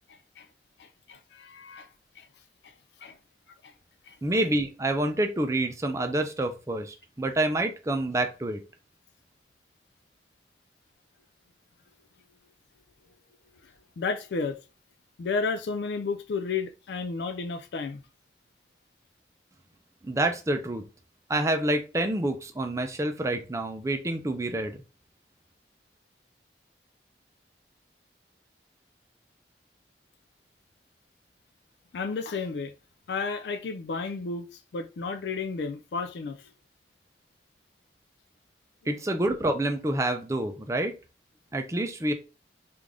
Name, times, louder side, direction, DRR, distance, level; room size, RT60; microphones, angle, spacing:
voice 1, 0.1-0.5 0.8-1.9 2.2-2.3 2.6-2.7 3.0-3.2 3.6-3.7 4.1-4.2 13.6-14.6 15.2-18.0 31.9-32.7 33.1-36.5, left 4 dB, 75° left, 0.4 m, -32 dB
voice 2, 4.2-8.6 20.0-20.8 21.3-24.8 38.9-41.0 41.5-42.1, right 1 dB, 15° right, 0.4 m, -27 dB
3.4 x 2.5 x 3.5 m
head